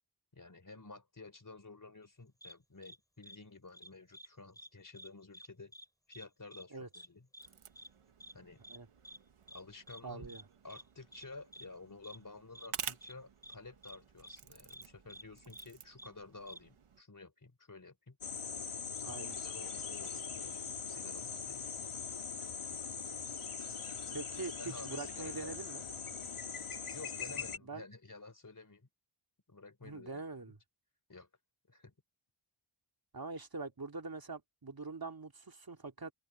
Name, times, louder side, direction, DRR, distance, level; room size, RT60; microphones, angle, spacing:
voice 1, 0.3-5.7 6.1-7.5 8.3-8.6 9.5-10.3 10.6-18.2 19.0-21.7 24.6-25.5 26.9-28.9 29.5-30.5 31.1-31.3 31.7-31.9, left 3 dB, 40° left, 4.0 m, -52 dB
sound 1, 2.4-2.5 2.8-3.0 3.2-3.4 3.7-4.3 4.5-4.7 4.9-5.5 5.7-5.9 6.1-6.3 6.5-6.6 6.9-7.1 7.3-7.5 7.7-7.9 8.2-8.3 8.6-8.8 9.0-9.2 9.5-9.6 9.9-10.0 10.3-10.4 10.7-10.8 11.1-11.2 11.5-11.7 12.0-12.2 12.5-12.7 13.0-13.1 13.4-13.6 13.8-14.0 14.2-14.4 14.7-14.8 15.1-15.2 15.5-15.7 16.0-16.1 16.5-16.6, equal, 5° left, 5.3 m, -51 dB
sound 2, 7.4-17.0, right 7 dB, 85° right, 1.2 m, -50 dB
voice 2, 10.0-10.4 19.0-19.3 24.1-25.8 27.7-27.8 29.8-30.6 33.1-36.1, right 3 dB, 45° right, 2.4 m, -43 dB
sound 3, 18.2-27.6, left 6 dB, 80° left, 2.1 m, -41 dB
open air
wide cardioid pair, 60°, 50 cm